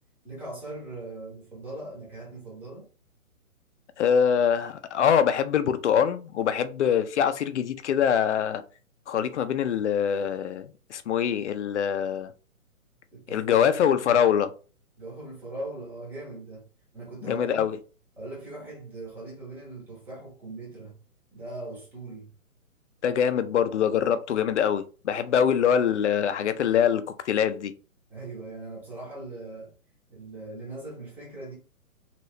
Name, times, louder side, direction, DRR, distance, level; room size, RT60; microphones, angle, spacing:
voice 1, 0.2-2.9 13.1-14.1 15.0-16.6 16.9-17.6 18.2-21.0 21.3-22.3 28.1-29.7 30.1-31.5, right 2 dB, 5° right, 0.7 m, -40 dB
voice 2, 4.0-8.6 9.1-12.3 13.3-14.5 17.3-17.8 23.0-27.7, left 8 dB, 55° left, 0.5 m, -24 dB
3.0 x 2.8 x 3.1 m
hypercardioid pair, 135°, 43 cm